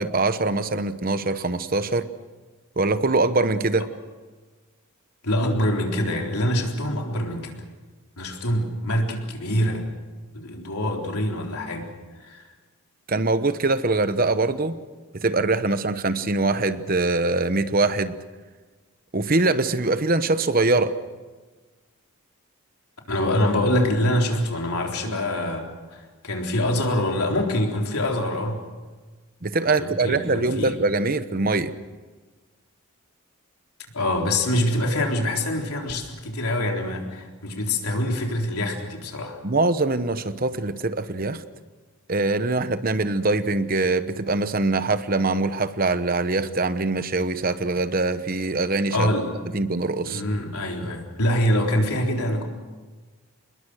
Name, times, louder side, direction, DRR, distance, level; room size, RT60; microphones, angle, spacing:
voice 1, 0.0-2.1 2.8-3.9 13.1-14.8 15.1-18.2 19.1-20.9 25.1-25.2 29.4-31.7 39.4-41.4 42.1-49.2 49.5-50.2, right 3 dB, 40° right, 12 dB, 1.0 m, -23 dB
voice 2, 5.2-7.5 8.2-9.8 10.3-11.9 12.2-12.5 23.1-28.6 29.7-30.8 33.9-39.4 48.9-49.3 50.0-52.4, left 1 dB, 90° left, 1 dB, 3.9 m, -25 dB
27.0 x 21.0 x 6.4 m, 1.3 s
head